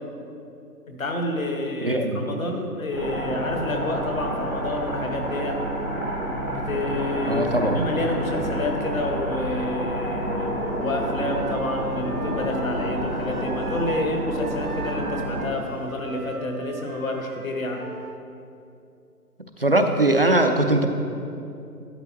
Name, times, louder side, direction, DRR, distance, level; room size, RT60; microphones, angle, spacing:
voice 1, 0.9-5.6 6.5-17.8, left 2 dB, 55° left, 3 dB, 1.5 m, -29 dB
voice 2, 1.8-2.2 7.2-7.8 19.6-20.9, right 1 dB, 40° right, 6 dB, 0.5 m, -20 dB
sound 1, 2.9-15.5, right 1 dB, 10° left, 0.7 m, -29 dB
Wind instrument woodwind instrument, 10.6-14.1 14.4-18.2, right 4 dB, 65° right, 0.8 m, -38 dB
12.0 x 10.5 x 3.0 m, 2.6 s
figure-of-eight pair, 150°, 48 cm